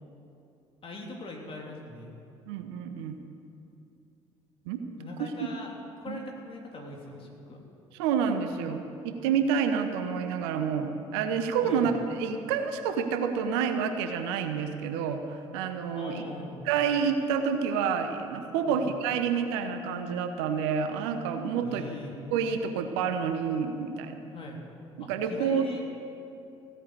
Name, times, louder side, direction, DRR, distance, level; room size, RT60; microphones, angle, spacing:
voice 1, 0.8-2.1 5.0-5.7 6.0-7.6 11.6-11.9 15.9-16.7 18.7-18.9 21.6-22.1 24.3-24.6 25.0-25.8, left 2 dB, 40° left, 0 dB, 3.3 m, -41 dB
voice 2, 2.5-3.2 4.7-4.8 5.4-5.5 6.1-6.2 8.0-16.2 16.7-21.9 22.3-24.2 25.1-25.7, right 6 dB, 70° right, 7 dB, 1.0 m, -28 dB
15.5 x 9.2 x 8.2 m, 2.6 s
figure-of-eight pair, 50°, 14 cm